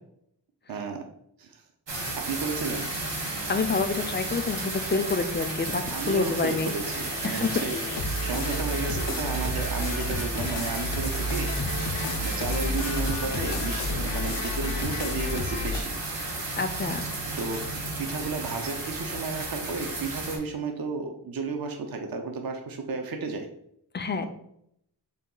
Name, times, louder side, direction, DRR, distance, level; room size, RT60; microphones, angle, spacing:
voice 1, 0.7-1.0 1.4-1.6 2.0-2.9 5.9-11.5 12.2-15.9 17.3-23.5 24.2-24.3, right 4 dB, 55° right, 4 dB, 0.6 m, -33 dB
sound 1, 1.9-20.4, right 2 dB, 85° right, 0.8 m, -33 dB
sound 2, 2.7-15.8, left 2 dB, 80° left, 0.5 m, -33 dB
voice 2, 3.5-6.7 7.2-7.5 16.6-17.1 23.9-24.2, left 4 dB, 25° left, 8 dB, 0.3 m, -27 dB
4.0 x 2.3 x 3.7 m, 0.75 s
wide cardioid pair, 60°, 42 cm